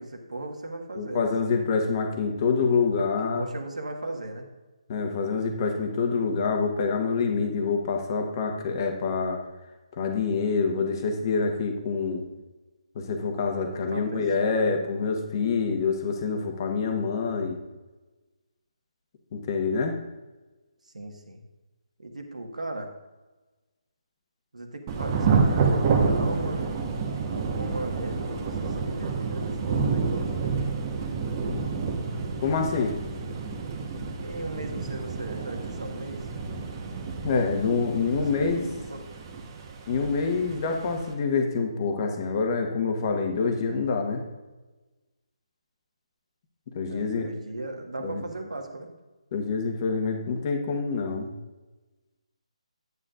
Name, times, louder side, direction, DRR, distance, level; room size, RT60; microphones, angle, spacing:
voice 1, 0.0-1.6 3.2-4.5 13.7-14.6 20.8-21.4 22.0-22.9 24.5-26.7 27.3-30.7 34.2-36.3 38.3-38.6 38.9-39.0 46.9-48.9, right 2 dB, 90° right, 3 dB, 1.6 m, -37 dB
voice 2, 0.9-3.4 4.9-9.4 10.0-12.2 12.9-17.6 19.3-19.9 32.4-32.9 37.2-38.7 39.9-44.2 46.7-47.3 48.0-48.2 49.3-51.3, left 4 dB, 35° left, 4 dB, 1.2 m, -26 dB
Thunder / Rain, 24.9-41.1, right 4 dB, 30° right, 1.1 m, -29 dB
9.6 x 9.5 x 2.5 m, 1.2 s
figure-of-eight pair, 155°, 4 cm